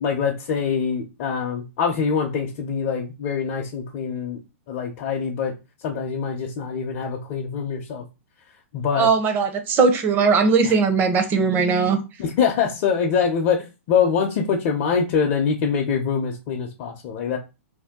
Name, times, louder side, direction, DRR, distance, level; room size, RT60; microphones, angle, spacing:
voice 1, 0.0-4.4 4.7-5.5 5.8-8.0 8.7-9.1 10.6-10.7 12.2-17.4, left 6 dB, 45° left, 1 dB, 0.7 m, -24 dB
voice 2, 9.0-12.0, right 5 dB, 25° right, 6 dB, 0.8 m, -19 dB
2.7 x 2.2 x 3.6 m, 0.28 s
hypercardioid pair, 125°, 7 cm